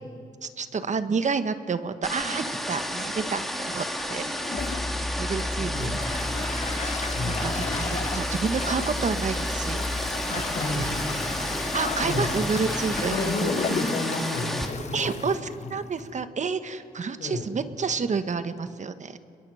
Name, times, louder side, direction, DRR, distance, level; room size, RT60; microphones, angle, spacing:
voice 1, 0.4-4.3 5.2-6.0 6.8-6.9 7.2-9.8 10.3-10.4 11.7-13.2 14.9-19.2, right 5 dB, 50° right, 11 dB, 1.2 m, -29 dB
sound 1, 2.0-14.7, equal, ahead, 3.0 m, -32 dB
Toilet flush, 4.4-16.2, left 6 dB, 45° left, 0.7 m, -36 dB
sound 2, 4.6-13.3, left 1 dB, 15° left, 1.7 m, -33 dB
voice 2, 5.6-6.0 7.1-7.6 10.3-11.4 12.0-12.3 13.1-15.3 17.2-17.4, left 2 dB, 90° left, -1 dB, 6.5 m, -30 dB
29.0 x 22.0 x 5.6 m, 2.3 s
cardioid pair, 75°, 16 cm